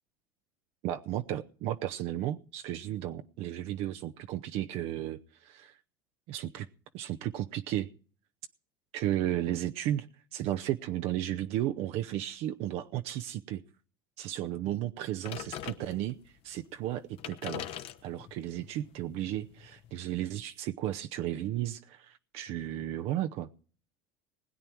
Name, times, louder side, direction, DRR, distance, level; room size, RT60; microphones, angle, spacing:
voice 1, 0.8-5.8 6.3-6.7 6.9-7.9 8.9-10.1 10.3-13.6 14.2-16.2 16.4-17.7 18.0-23.5, right 13 dB, 60° right, 8 dB, 0.7 m, -34 dB
sound 1, 15.2-16.3 16.9-17.0 17.1-20.2, left 11 dB, 55° left, 1.1 m, -43 dB
20.5 x 8.9 x 4.6 m, 0.43 s
hypercardioid pair, 85°, 12 cm